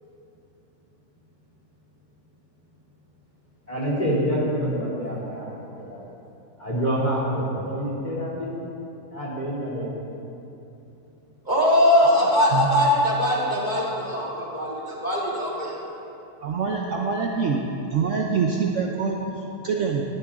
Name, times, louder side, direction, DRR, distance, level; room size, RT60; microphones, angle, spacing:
voice 1, 3.7-6.0 6.6-8.5 9.1-10.0, equal, 25° left, -6 dB, 2.9 m, -27 dB
voice 2, 11.5-15.8, left 1 dB, 25° right, -5 dB, 2.2 m, -21 dB
voice 3, 12.2-12.7 13.6-13.8 16.4-17.6 17.9-20.0, right 5 dB, 55° right, 0 dB, 1.1 m, -26 dB
18.5 x 12.0 x 3.7 m, 2.9 s
omnidirectional pair, 1.7 m